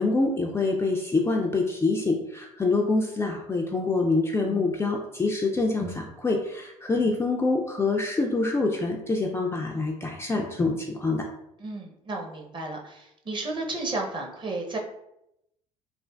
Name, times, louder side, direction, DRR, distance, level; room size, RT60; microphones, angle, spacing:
voice 1, 0.0-11.3, left 3 dB, 15° left, 0 dB, 0.3 m, -26 dB
voice 2, 11.6-14.8, right 2 dB, 25° right, 0 dB, 0.7 m, -33 dB
3.3 x 2.4 x 2.3 m, 0.82 s
hypercardioid pair, 60°, 18 cm